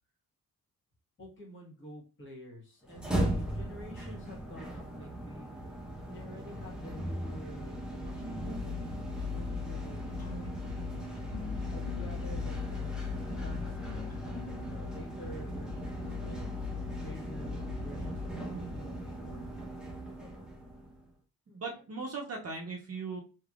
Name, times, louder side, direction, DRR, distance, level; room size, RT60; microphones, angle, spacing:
voice 1, 1.2-5.5 6.1-10.7 11.7-16.5 17.0-19.5 20.1-20.5 21.5-21.6, equal, 35° left, -3 dB, 1.4 m, -49 dB
sound 1, 2.8-21.0, left 1 dB, ahead, 0.8 m, -37 dB
sound 2, 10.2-17.6, left 4 dB, 85° left, 1.0 m, -49 dB
voice 2, 21.5-23.2, right 4 dB, 45° right, 0 dB, 0.7 m, -39 dB
3.3 x 2.9 x 2.4 m, 0.34 s
cardioid pair, 115°, 35 cm